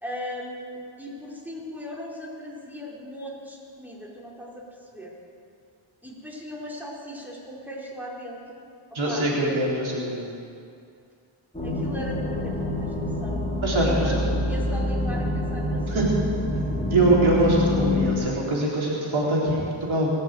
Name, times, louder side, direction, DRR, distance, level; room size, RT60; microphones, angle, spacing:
voice 1, 0.0-5.1 6.0-8.7 8.9-9.3 11.6-13.5 13.8-16.1, equal, 5° right, -4 dB, 4.4 m, -38 dB
voice 2, 8.9-10.2 13.6-14.4 15.9-16.1 16.9-20.1, right 2 dB, 70° right, -5 dB, 4.2 m, -23 dB
sound 1, 11.5-18.1, left 1 dB, 10° left, 3.5 m, -26 dB
22.0 x 7.6 x 7.9 m, 2.4 s
cardioid pair, 55°, 49 cm